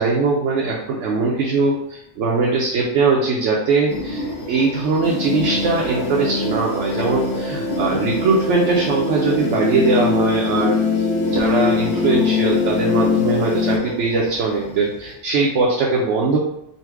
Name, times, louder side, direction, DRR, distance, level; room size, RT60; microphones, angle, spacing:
voice 1, 0.0-10.8 11.3-16.4, right 4 dB, 80° right, -2 dB, 1.0 m, -20 dB
sound 1, 3.9-15.1, left 1 dB, 30° left, 0.8 m, -31 dB
sound 2, 5.0-13.8, left 4 dB, 60° left, 1.0 m, -22 dB
4.1 x 2.1 x 4.5 m, 0.79 s
omnidirectional pair, 1.2 m